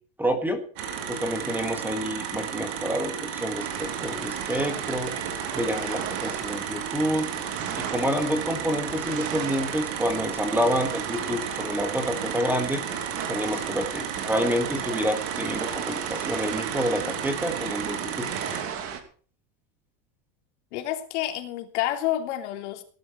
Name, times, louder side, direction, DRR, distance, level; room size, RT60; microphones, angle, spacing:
voice 1, 0.2-0.6 1.1-5.1 5.5-7.3 7.8-12.8 13.3-18.3, equal, 5° right, 7 dB, 1.7 m, -28 dB
sound 1, 0.8-18.6, right 8 dB, 65° right, 3.5 m, -34 dB
sound 2, 3.6-19.0, right 8 dB, 40° right, 2.6 m, -36 dB
voice 2, 20.7-22.8, left 13 dB, 75° left, 5 dB, 3.3 m, -29 dB
18.5 x 11.0 x 4.5 m, 0.43 s
supercardioid pair, 170°, 35 cm